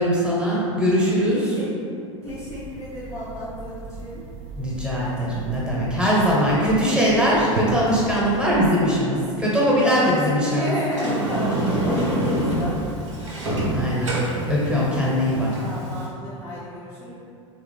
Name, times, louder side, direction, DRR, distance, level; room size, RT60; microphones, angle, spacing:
voice 1, 0.0-1.4 4.6-10.7 13.4-15.5, equal, 5° right, -7 dB, 0.9 m, -21 dB
voice 2, 1.3-1.7 2.2-4.2 9.8-12.8 15.5-17.1, left 1 dB, 20° left, -9 dB, 0.5 m, -32 dB
sound 1, 2.3-8.7, right 4 dB, 55° right, 0.4 m, -36 dB
Sliding door, 10.9-16.1, right 1 dB, 75° right, 0.8 m, -26 dB
3.9 x 2.0 x 3.1 m, 2.6 s
figure-of-eight pair, 85°, 16 cm